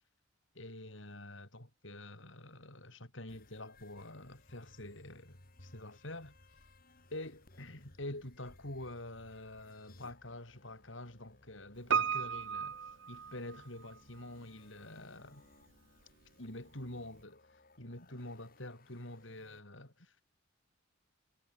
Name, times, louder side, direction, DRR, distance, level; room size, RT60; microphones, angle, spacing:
voice 1, 0.5-6.4 7.1-12.8 13.1-15.4 16.4-20.2, left 1 dB, 70° left, 6.3 m, -47 dB
sound 1, 3.3-19.6, left 2 dB, 45° left, 3.1 m, -62 dB
Piano, 11.9-14.0 14.2-14.3, right 7 dB, 65° right, 0.8 m, -34 dB
head